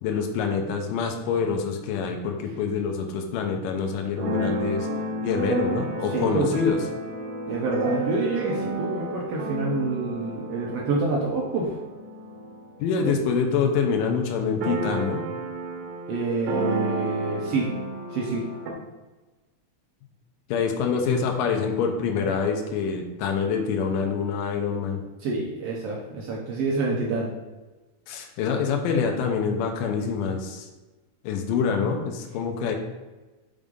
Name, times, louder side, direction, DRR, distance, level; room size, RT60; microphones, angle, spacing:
voice 1, 0.0-4.9 5.2-6.8 12.8-15.2 20.5-25.0 28.1-30.7 31.2-32.8, left 6 dB, 90° left, 3 dB, 2.5 m, -26 dB
Keyboard (musical), 4.2-13.7 14.0-14.1 14.3-18.7, right 1 dB, 90° right, 2.6 m, -31 dB
voice 2, 6.1-6.5 7.5-11.7 13.0-13.2 16.1-17.7 18.1-18.4 25.2-27.3, right 3 dB, 70° right, -3 dB, 1.6 m, -27 dB
6.5 x 3.6 x 5.2 m, 1.2 s
omnidirectional pair, 3.8 m